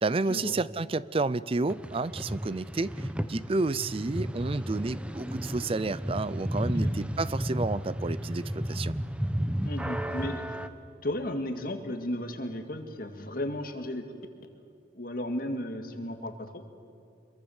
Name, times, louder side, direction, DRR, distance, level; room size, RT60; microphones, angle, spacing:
voice 1, 0.0-2.9 3.3-8.9, right 3 dB, 30° right, 18 dB, 0.5 m, -30 dB
sound 1, 1.7-10.7, equal, 5° right, 0.8 m, -33 dB
voice 2, 6.6-6.9 9.6-10.6 11.0-14.1 14.9-16.6, left 1 dB, 50° left, 6 dB, 2.1 m, -34 dB
26.0 x 22.5 x 7.2 m, 2.4 s
head